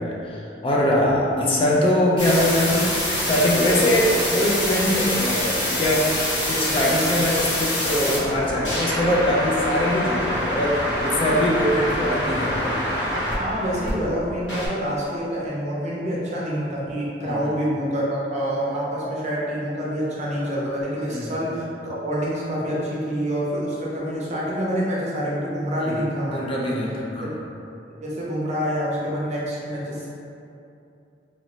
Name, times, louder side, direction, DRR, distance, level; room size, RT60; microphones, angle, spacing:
voice 1, 0.0-12.8 17.2-17.5 21.1-21.3 25.8-26.0 26.3-27.4, left 1 dB, 30° left, -4 dB, 0.4 m, -22 dB
sound 1, 2.2-13.9 14.5-14.7, left 1 dB, 85° left, 1.2 m, -25 dB
voice 2, 13.4-26.6 27.2-27.4 28.0-30.1, equal, 40° right, -6 dB, 0.6 m, -27 dB
2.9 x 2.7 x 3.0 m, 2.7 s
head